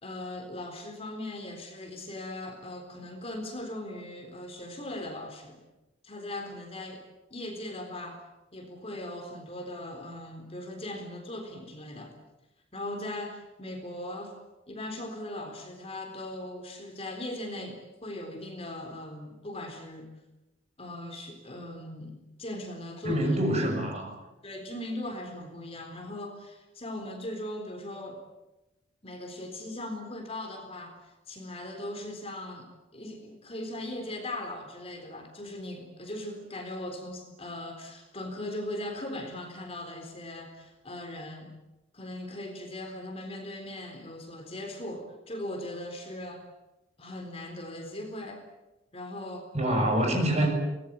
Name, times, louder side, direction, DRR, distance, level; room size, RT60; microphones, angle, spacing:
voice 1, 0.0-5.6 6.0-7.0 7.3-8.2 8.5-12.1 12.7-14.3 14.7-20.1 20.8-23.5 24.4-28.2 29.0-31.0 31.3-41.5 41.9-46.4 47.0-48.4 48.9-49.5 50.4-50.5, left 1 dB, 30° left, 5 dB, 3.9 m, -39 dB
voice 2, 23.0-24.2 49.5-50.5, right 1 dB, 35° right, 2 dB, 7.0 m, -26 dB
24.0 x 20.0 x 9.4 m, 0.97 s
head